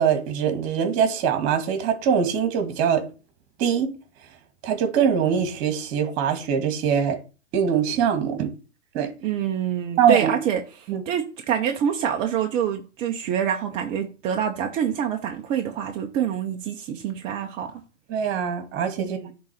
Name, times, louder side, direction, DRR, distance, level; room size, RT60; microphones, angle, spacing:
voice 1, 0.0-3.0 3.6-3.9 4.6-7.2 7.5-8.5 8.9-9.1 10.0-10.3 10.9-11.0 18.1-19.2, right 7 dB, 35° right, 2.2 m, -22 dB
voice 2, 9.2-17.8 19.0-19.3, right 8 dB, 15° right, 0.5 m, -26 dB
9.2 x 3.8 x 6.3 m
hypercardioid pair, 130°, 37 cm